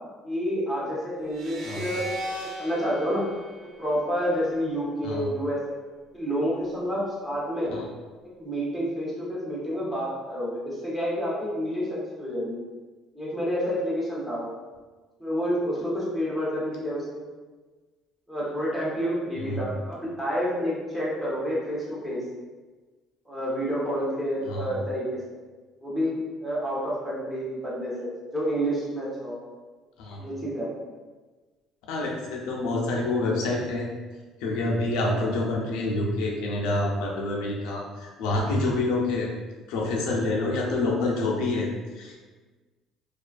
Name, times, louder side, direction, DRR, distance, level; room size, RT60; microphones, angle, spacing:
voice 1, 0.2-2.0 2.6-3.2 3.8-5.8 6.1-7.7 8.4-11.9 12.2-12.6 13.1-14.5 15.2-17.2 18.3-22.2 23.3-25.2 25.8-29.4 30.2-30.7, equal, 5° right, -7 dB, 0.8 m, -29 dB
sound 1, 1.3-4.6, right 1 dB, 55° right, 0.5 m, -38 dB
voice 2, 31.9-33.9 34.4-39.3 39.7-41.7 41.9-42.2, left 2 dB, 85° left, -1 dB, 0.4 m, -27 dB
2.3 x 2.2 x 2.4 m, 1.3 s
cardioid pair, 120°, 0 cm